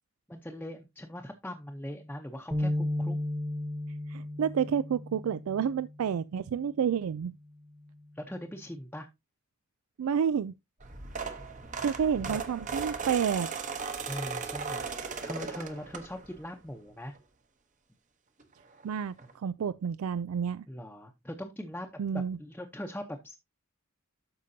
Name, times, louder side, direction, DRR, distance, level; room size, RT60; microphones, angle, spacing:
voice 1, 0.3-3.2 8.1-9.1 11.8-12.4 14.1-17.1 20.7-23.4, equal, 5° left, 0.8 m, -41 dB
sound 1, 2.5-6.0, left 1 dB, 10° right, 1.1 m, -33 dB
voice 2, 4.1-7.3 10.0-10.5 11.8-13.5 18.8-20.6 22.0-22.4, right 7 dB, 85° right, 0.3 m, -29 dB
sound 2, 10.8-16.4 16.9-17.2 18.4-18.5 18.7-18.8 19.2-19.3, right 5 dB, 35° right, 1.0 m, -37 dB
12.5 x 5.2 x 2.7 m
head